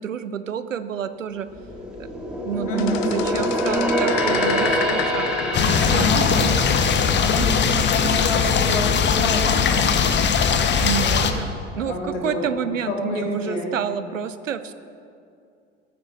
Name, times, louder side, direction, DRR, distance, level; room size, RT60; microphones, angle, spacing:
voice 1, 0.0-1.5 2.0-2.1 2.4-6.6 10.8-11.5 11.8-14.7, right 8 dB, 85° right, 13 dB, 0.6 m, -29 dB
sound 1, 1.4-8.9 9.3-9.5 10.0-10.8 11.1-11.2, equal, ahead, 2.3 m, -26 dB
voice 2, 2.7-3.1 6.0-6.6 7.2-10.0 11.8-13.7, left 2 dB, 75° left, -1 dB, 2.4 m, -28 dB
sound 2, 2.8-6.3 6.6-7.3 9.1-9.3, left 15 dB, 50° left, 0.5 m, -31 dB
sound 3, 5.5-11.3, left 6 dB, 30° left, 0.9 m, -20 dB
14.0 x 9.5 x 4.4 m, 2.4 s
figure-of-eight pair, 70°, 37 cm